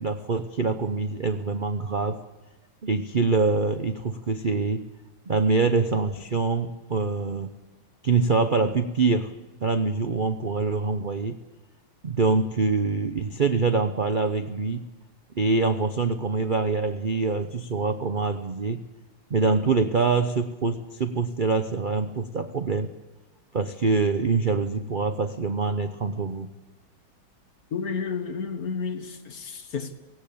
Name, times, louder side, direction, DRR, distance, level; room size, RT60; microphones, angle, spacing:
voice 1, 0.0-2.2 2.8-4.8 5.3-7.5 8.0-9.3 9.6-11.4 12.0-14.9 15.4-18.8 19.3-22.9 23.5-26.5, right 4 dB, 80° right, 0.4 m, -25 dB
voice 2, 27.7-29.9, left 5 dB, 50° left, 1.8 m, -31 dB
18.0 x 17.0 x 8.6 m
omnidirectional pair, 2.2 m